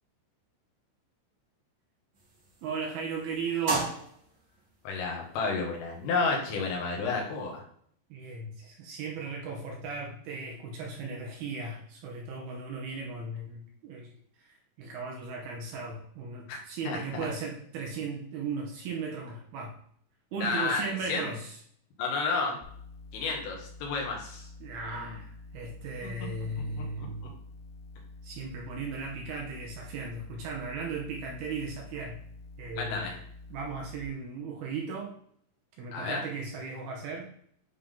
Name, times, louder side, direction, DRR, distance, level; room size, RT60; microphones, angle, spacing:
sound 1, 2.1-7.6, right 3 dB, 50° right, 1.4 m, -39 dB
voice 1, 2.6-4.0 8.1-14.1 14.4-19.8 20.3-21.6 24.6-27.3 28.2-32.2 32.6-33.1 33.5-35.2 35.8-37.3, right 4 dB, 80° right, 0 dB, 2.4 m, -36 dB
voice 2, 4.8-7.6 16.5-16.6 16.9-17.2 20.4-21.3 22.0-22.6 23.1-24.5 26.0-26.1 27.0-27.1 32.8-33.2 35.9-36.2, left 4 dB, 85° left, 0 dB, 4.2 m, -31 dB
sound 2, 22.6-34.0, left 3 dB, 65° left, 3.5 m, -48 dB
10.0 x 3.7 x 3.8 m, 0.63 s
omnidirectional pair, 5.6 m